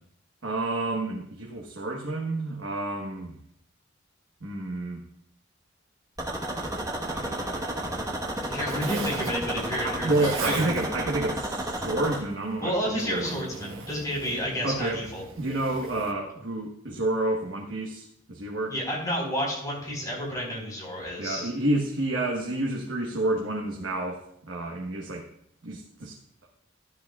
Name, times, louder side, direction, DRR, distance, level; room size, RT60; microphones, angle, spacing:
voice 1, 0.4-3.4 4.4-5.0 7.0-8.0 9.8-13.5 14.6-15.0 15.4-18.7 21.2-25.3 25.6-26.2, right 2 dB, 65° right, -1 dB, 1.3 m, -30 dB
sound 1, 6.2-12.2, right 1 dB, 20° right, 1.2 m, -32 dB
Zipper (clothing), 7.9-16.1, right 4 dB, 85° right, 1.2 m, -41 dB
voice 2, 8.5-10.7 12.6-15.2 18.7-21.5, equal, 20° left, -4 dB, 4.1 m, -31 dB
13.0 x 10.5 x 2.4 m, 0.71 s
head